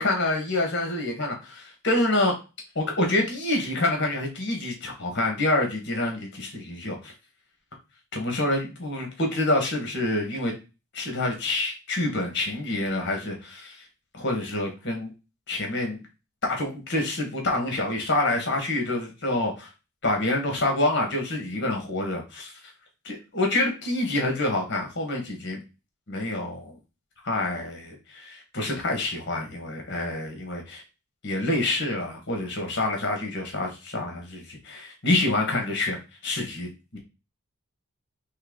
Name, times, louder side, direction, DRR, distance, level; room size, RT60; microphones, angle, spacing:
voice 1, 0.0-2.4 2.7-7.1 8.1-10.5 10.9-13.8 14.1-15.1 15.5-16.0 16.4-19.7 20.0-22.5 23.0-25.6 26.1-26.8 27.2-30.8 31.2-36.0 36.2-37.0, left 2 dB, 55° left, 2 dB, 1.5 m, -27 dB
4.5 x 3.1 x 3.8 m, 0.28 s
head